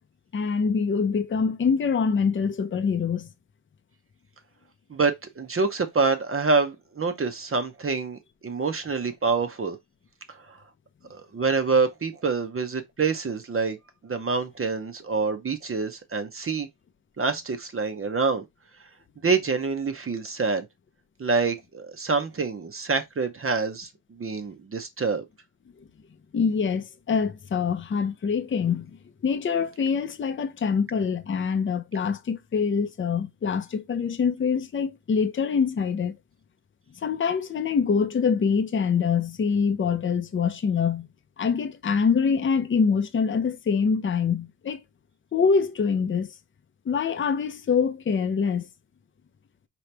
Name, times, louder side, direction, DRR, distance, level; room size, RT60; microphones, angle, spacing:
voice 1, 0.3-3.3 26.3-28.9 29.2-36.2 37.0-41.1 41.4-44.8 45.3-46.3 46.9-48.7, left 6 dB, 25° left, 0.5 m, -25 dB
voice 2, 4.9-9.8 10.3-10.6 11.1-13.8 14.0-16.7 17.2-18.4 19.2-20.7 21.2-25.2, right 4 dB, 30° right, 0.7 m, -26 dB
4.9 x 2.9 x 3.3 m
wide cardioid pair, 140°, 45 cm